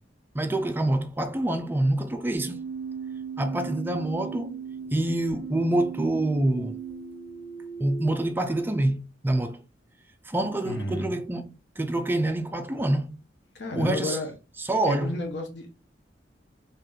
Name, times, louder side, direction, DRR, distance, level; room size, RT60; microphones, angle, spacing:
voice 1, 0.3-2.7 3.4-4.6 4.9-6.8 7.8-9.6 10.3-13.2 13.7-14.2 14.6-15.2, right 1 dB, 10° right, 0.3 m, -26 dB
Keyboard (musical), 2.3-8.3, right 6 dB, 50° right, 1.1 m, -37 dB
voice 2, 10.6-11.1 13.5-14.3 14.9-15.8, left 2 dB, 85° left, 1.2 m, -32 dB
3.0 x 3.0 x 3.8 m
head